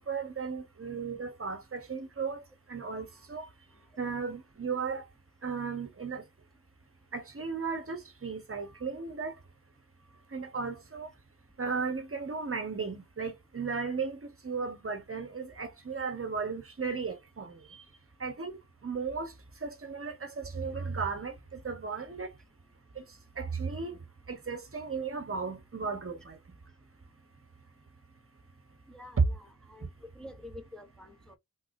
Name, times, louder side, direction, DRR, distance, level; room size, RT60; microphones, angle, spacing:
voice 1, 0.0-2.4 2.7-3.5 4.0-5.0 5.4-6.2 7.1-9.3 10.3-11.1 11.6-17.8 18.2-19.3 19.6-22.3 23.0-23.1 23.4-24.0 24.3-26.4 29.2-29.3, right 5 dB, 45° right, 1.2 m, -35 dB
voice 2, 28.9-29.9 30.2-31.4, left 1 dB, ahead, 0.9 m, -48 dB
6.1 x 3.3 x 2.7 m
wide cardioid pair, 115°, 32 cm